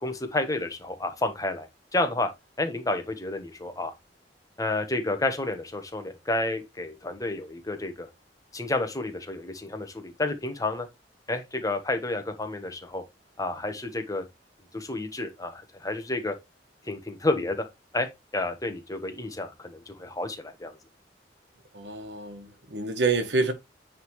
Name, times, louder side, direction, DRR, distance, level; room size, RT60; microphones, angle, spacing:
voice 1, 0.0-2.3 2.6-3.9 4.6-8.1 8.5-10.9 11.3-13.0 13.4-14.2 14.7-16.3 16.9-17.7 17.9-20.7, left 2 dB, 20° left, 1.1 m, -30 dB
voice 2, 21.7-23.5, right 3 dB, 75° right, 1.3 m, -27 dB
8.9 x 3.7 x 3.1 m
head